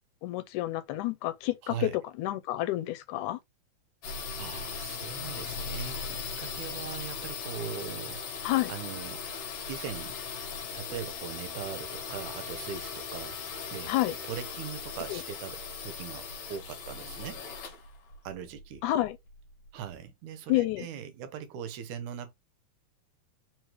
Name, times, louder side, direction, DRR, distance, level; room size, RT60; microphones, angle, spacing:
voice 1, 0.2-3.4 8.4-8.7 13.9-14.1 15.1-15.2 18.8-19.2 20.5-20.9, left 16 dB, 80° left, 2.0 m, -29 dB
voice 2, 1.6-2.0 4.4-9.3 9.7-10.2 10.7-13.4 13.7-17.4 18.2-18.8 19.7-22.3, right 8 dB, 80° right, 2.1 m, -40 dB
sound 1, 4.0-19.7, left 5 dB, 55° left, 1.9 m, -38 dB
4.8 x 3.1 x 3.0 m
omnidirectional pair, 3.6 m